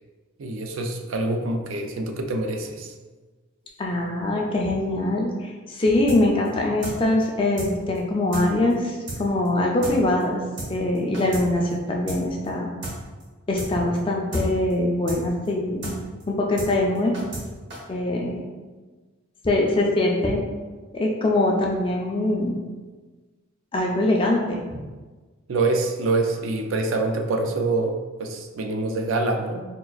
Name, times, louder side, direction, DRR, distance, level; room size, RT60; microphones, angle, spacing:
voice 1, 0.4-2.9 25.5-29.6, right 2 dB, 85° right, 4 dB, 0.4 m, -25 dB
voice 2, 3.8-12.7 13.5-15.9 16.3-17.2 17.9-18.4 19.4-20.4 20.9-22.6 23.7-24.6, left 1 dB, 25° left, 0 dB, 0.4 m, -23 dB
sound 1, 6.1-6.2 6.4-6.5 6.8-6.9 7.2-7.3 7.6-7.7 7.9-8.0 8.3-8.4 8.7-8.8 9.1-9.2 9.4-9.5 9.8-9.9 10.2-10.3 10.6-10.7 10.9-11.4 11.7-11.8 12.1-12.2 12.4-12.5 12.8-12.9 13.2-13.3 13.6-13.7 13.9-14.0 14.3-14.4 14.7-14.8 15.1-15.2 15.4-15.5 15.8-15.9 16.2-16.3 16.6-16.7 16.9-17.4 17.7-17.8, right 1 dB, 60° right, 1.0 m, -33 dB
4.4 x 2.3 x 2.3 m, 1.3 s
head